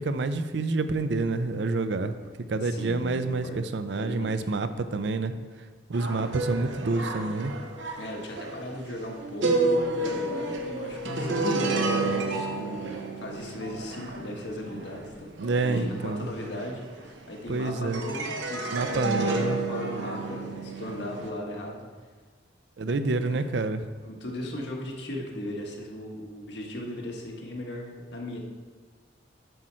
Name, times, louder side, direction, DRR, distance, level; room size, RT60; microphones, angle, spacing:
voice 1, 0.0-2.1 2.5-5.3 5.9-7.5 15.4-16.3 17.5-18.0 18.7-19.6 22.8-23.8, right 3 dB, 70° right, 10 dB, 0.5 m, -28 dB
voice 2, 2.5-3.7 4.0-4.3 8.0-21.8 22.9-23.0 24.0-28.4, left 1 dB, 65° left, 0 dB, 1.3 m, -37 dB
sound 1, 5.9-17.5 17.9-21.3, right 2 dB, 85° right, 0.9 m, -30 dB
7.9 x 6.3 x 4.4 m, 1.4 s
head